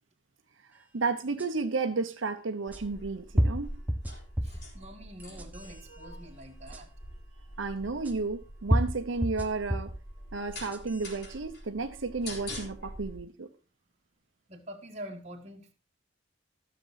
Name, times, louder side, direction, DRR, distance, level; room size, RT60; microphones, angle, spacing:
voice 1, 0.9-3.7 7.6-9.9 10.3-13.5, right 3 dB, 90° right, 0.8 m, -32 dB
sound 1, 1.4-1.5 2.7-2.8 3.4-4.7 5.2-5.8 6.7-6.8 8.1-8.2 8.7-10.0 10.5-11.1, equal, 10° right, 0.7 m, -29 dB
sound 2, 2.7-13.2, left 1 dB, 55° left, 3.7 m, -45 dB
voice 2, 4.4-6.9 14.5-15.7, equal, 35° right, 1.5 m, -45 dB
12.5 x 6.8 x 4.0 m
head